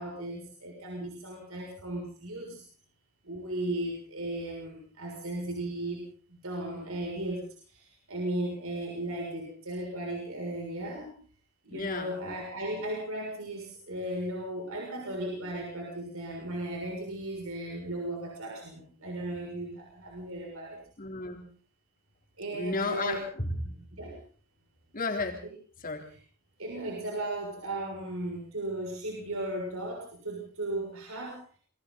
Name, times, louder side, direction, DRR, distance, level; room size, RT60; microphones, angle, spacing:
voice 1, 0.0-2.6 3.2-11.1 11.6-20.8 22.4-23.2 23.9-24.2 25.4-25.5 26.0-26.2 26.6-31.4, right 1 dB, 65° right, -1 dB, 6.6 m, -36 dB
voice 2, 11.7-12.1 21.0-21.4 22.5-23.8 24.9-25.4 25.8-26.0, left 3 dB, 40° left, 2 dB, 3.6 m, -33 dB
28.5 x 22.5 x 4.1 m, 0.43 s
head